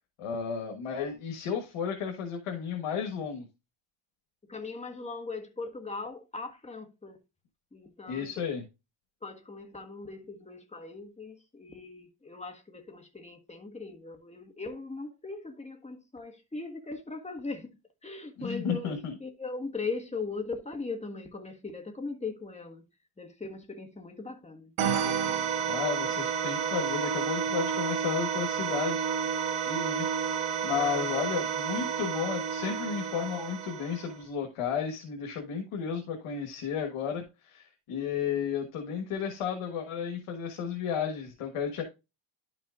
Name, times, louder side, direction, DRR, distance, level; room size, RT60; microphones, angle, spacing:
voice 1, 0.2-3.5 8.1-8.6 18.4-19.1 25.7-29.1 29.6-30.1 30.6-41.8, left 7 dB, 85° left, 1.6 m, -33 dB
voice 2, 4.5-7.2 7.7-8.5 9.2-22.8 23.2-24.7, left 3 dB, 15° left, 1.6 m, -39 dB
sound 1, 24.8-34.2, right 7 dB, 75° right, 1.5 m, -30 dB
11.0 x 5.8 x 2.5 m
cardioid pair, 95°, 50 cm